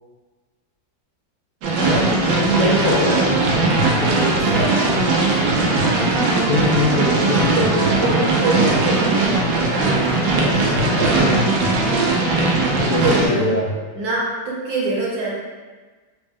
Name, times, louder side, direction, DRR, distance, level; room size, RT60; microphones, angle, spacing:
sound 1, 1.6-13.3, right 2 dB, 85° right, 1.4 m, -19 dB
voice 1, 1.8-3.2 6.5-7.6 10.8-11.7 12.9-13.8, left 2 dB, 85° left, -4 dB, 0.7 m, -23 dB
voice 2, 3.6-5.2 7.5-10.1 10.4-11.5 12.8-13.5 13.9-15.4, right 2 dB, 65° right, -5 dB, 1.2 m, -25 dB
4.1 x 2.1 x 3.5 m, 1.3 s
omnidirectional pair, 2.0 m